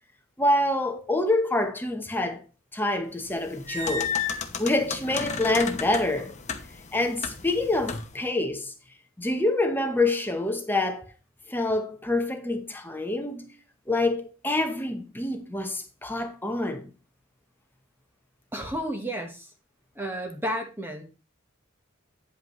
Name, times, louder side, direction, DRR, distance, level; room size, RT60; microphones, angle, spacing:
voice 1, 0.4-2.4 2.7-4.2 4.6-6.3 6.9-8.7 9.2-11.0 11.5-13.5 13.9-16.9, left 2 dB, 10° left, 1.0 m, -26 dB
sound 1, 3.3-8.2, left 6 dB, 35° left, 0.9 m, -33 dB
voice 2, 18.5-19.5 19.9-21.0, equal, 10° right, 1.2 m, -32 dB
9.4 x 8.1 x 3.1 m
head